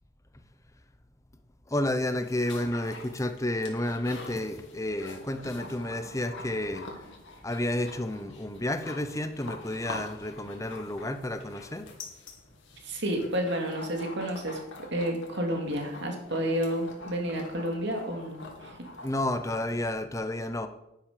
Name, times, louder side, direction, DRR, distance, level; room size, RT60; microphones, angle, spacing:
voice 1, 1.7-6.9 7.4-11.9 19.0-20.7, left 1 dB, 15° left, 9 dB, 0.7 m, -31 dB
sound 1, 2.1-19.9, left 2 dB, 65° left, 2.4 m, -46 dB
voice 2, 12.8-14.6 14.9-18.8, equal, 55° right, 2 dB, 2.4 m, -30 dB
10.5 x 10.5 x 5.1 m, 0.86 s
head